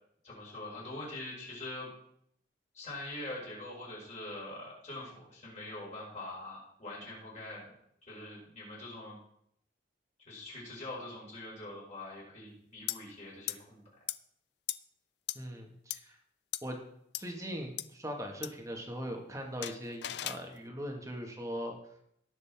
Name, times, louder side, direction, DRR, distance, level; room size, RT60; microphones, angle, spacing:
voice 1, 0.2-1.9 2.7-7.7 8.1-9.2 10.3-13.8, left 2 dB, 40° left, -5 dB, 5.2 m, -43 dB
sound 1, 12.9-13.0 13.5-13.6 14.1-14.2 14.7-14.8 15.3-15.4 15.9-16.0 16.5-16.6 17.1-17.2 17.8-17.9 18.4-18.5 19.6-20.4, left 14 dB, 65° left, 0.4 m, -36 dB
voice 2, 15.3-16.2 16.6-16.8 17.2-21.8, equal, 20° right, 2 dB, 1.7 m, -40 dB
19.0 x 6.7 x 3.6 m, 0.74 s
head